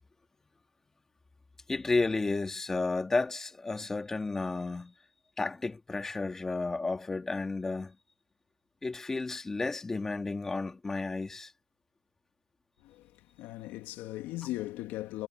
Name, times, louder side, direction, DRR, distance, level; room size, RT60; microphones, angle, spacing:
voice 1, 1.7-4.9 5.4-8.0 8.8-11.5, left 3 dB, 10° left, 1.8 m, -32 dB
voice 2, 12.8-15.3, left 16 dB, 35° left, 2.3 m, -38 dB
supercardioid pair, 150°, 5 cm